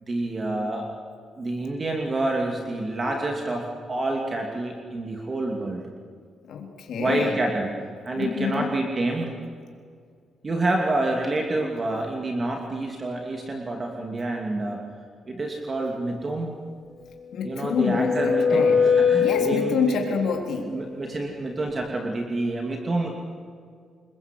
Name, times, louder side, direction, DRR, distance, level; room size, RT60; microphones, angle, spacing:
voice 1, 0.1-0.9 1.4-5.9 7.0-7.7 8.0-9.3 10.4-14.8 15.3-16.5 17.4-20.0 20.7-23.1, right 2 dB, 25° right, 1 dB, 2.6 m, -28 dB
voice 2, 6.4-7.4 8.1-8.7 17.3-18.8 19.2-20.7, left 6 dB, 65° left, 2 dB, 3.6 m, -27 dB
sound 1, 17.2-20.3, left 6 dB, 20° left, 7.5 m, -22 dB
27.5 x 22.0 x 8.4 m, 2.2 s
cardioid pair, 135°, 0 cm